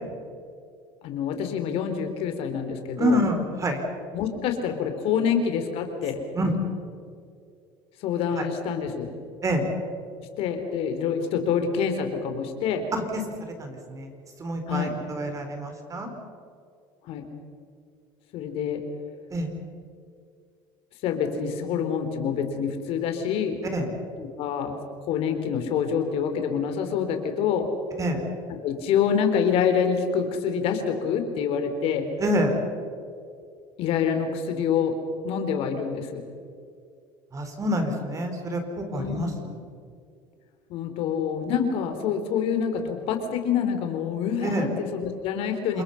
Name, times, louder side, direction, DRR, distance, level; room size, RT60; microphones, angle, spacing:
voice 1, 1.0-3.2 4.1-6.2 8.0-9.1 10.2-12.8 14.7-15.0 17.1-17.3 18.3-18.8 21.0-23.6 24.2-24.8 25.1-27.7 28.6-32.1 33.8-34.9 35.2-36.2 38.9-39.4 40.7-45.8, left 7 dB, 60° left, 6 dB, 3.7 m, -26 dB
voice 2, 3.0-3.8 6.3-6.5 8.4-8.5 9.4-9.6 12.9-13.2 13.6-14.1 14.4-16.1 19.3-19.5 23.7-23.9 28.0-28.2 32.2-32.5 37.3-39.3 44.4-44.7 45.7-45.8, equal, 30° right, 5 dB, 4.6 m, -27 dB
28.0 x 22.5 x 5.8 m, 2.3 s
supercardioid pair, 105°, 11 cm